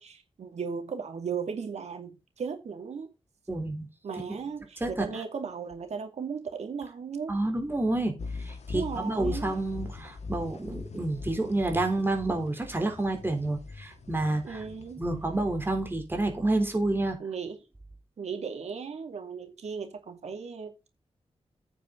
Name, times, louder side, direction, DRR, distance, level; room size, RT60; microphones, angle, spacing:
voice 1, 0.0-3.1 4.0-7.4 8.7-9.5 14.4-15.0 17.2-17.6 18.2-20.9, right 6 dB, 80° right, 2.5 m, -36 dB
voice 2, 3.5-3.9 4.8-4.9 7.3-14.6 15.0-17.2, right 2 dB, 20° right, 3.6 m, -29 dB
sound 1, 8.2-15.6, left 4 dB, 80° left, 2.2 m, -41 dB
9.3 x 8.4 x 4.0 m
wide cardioid pair, 110°, 11 cm